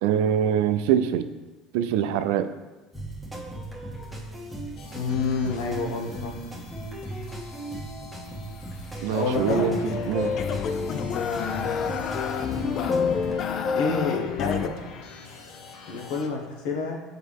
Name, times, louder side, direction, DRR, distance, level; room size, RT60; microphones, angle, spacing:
voice 1, 0.0-1.3 1.7-2.5 9.0-10.3, right 9 dB, 80° right, 11 dB, 0.4 m, -24 dB
sound 1, 2.9-13.4, right 1 dB, ahead, 1.0 m, -37 dB
sound 2, 4.8-16.3, left 4 dB, 60° left, 0.7 m, -45 dB
voice 2, 4.9-6.4 9.1-9.7 13.7-14.8 15.9-17.0, left 4 dB, 85° left, 1 dB, 1.1 m, -28 dB
sound 3, 9.5-14.7, left 6 dB, 40° left, 0.3 m, -28 dB
6.6 x 4.1 x 3.5 m, 1.2 s
cardioid pair, 145°, 0 cm